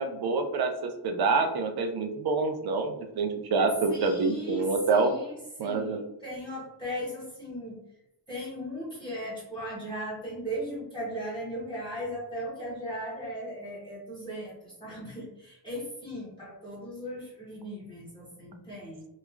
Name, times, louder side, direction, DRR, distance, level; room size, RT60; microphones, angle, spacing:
voice 1, 0.0-5.1 5.6-6.0, right 4 dB, 60° right, 6 dB, 0.5 m, -27 dB
voice 2, 3.9-5.3 5.6-7.8 8.3-19.1, equal, 10° left, -7 dB, 0.9 m, -37 dB
3.0 x 2.3 x 2.4 m, 0.86 s
wide cardioid pair, 155°, 42 cm